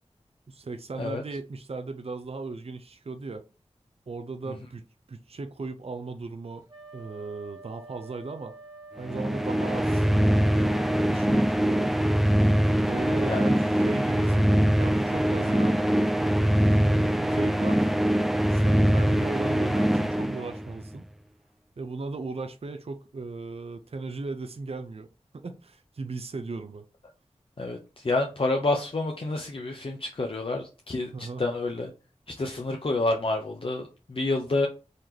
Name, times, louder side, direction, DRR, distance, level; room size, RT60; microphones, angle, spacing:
voice 1, 0.5-3.4 4.1-4.8 5.1-6.6 6.9-8.5 9.0-10.1 10.4-11.9 12.9-15.8 16.3-17.9 18.5-21.1 21.8-25.1 25.3-26.8 31.1-31.4, right 3 dB, 55° right, 8 dB, 0.5 m, -37 dB
Wind instrument woodwind instrument, 6.7-11.1, right 3 dB, 40° right, 1.4 m, -47 dB
sound 1, 9.0-20.9, equal, ahead, 0.4 m, -23 dB
voice 2, 27.6-31.9 32.3-34.7, left 2 dB, 50° left, 1 dB, 0.7 m, -28 dB
4.0 x 2.9 x 3.3 m, 0.31 s
wide cardioid pair, 55°, 12 cm